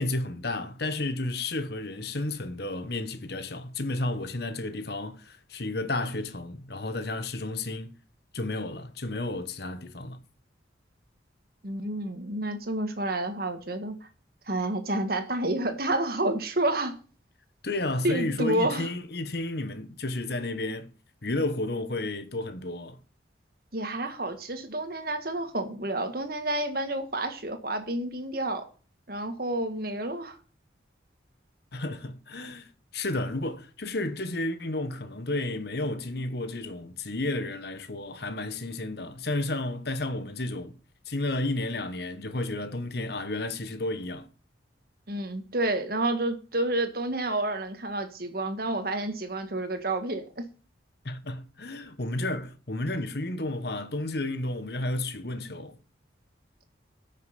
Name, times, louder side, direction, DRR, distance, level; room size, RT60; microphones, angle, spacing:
voice 1, 0.0-8.0 8.3-10.2 17.6-20.9 21.2-23.0 31.7-40.7 41.1-44.3 51.0-55.8, left 2 dB, 55° left, 1.1 m, -32 dB
voice 2, 11.6-14.0 14.5-17.0 18.0-18.9 23.7-28.7 29.1-30.4 45.1-50.4, right 1 dB, 50° right, 1.7 m, -29 dB
14.5 x 6.6 x 5.8 m
head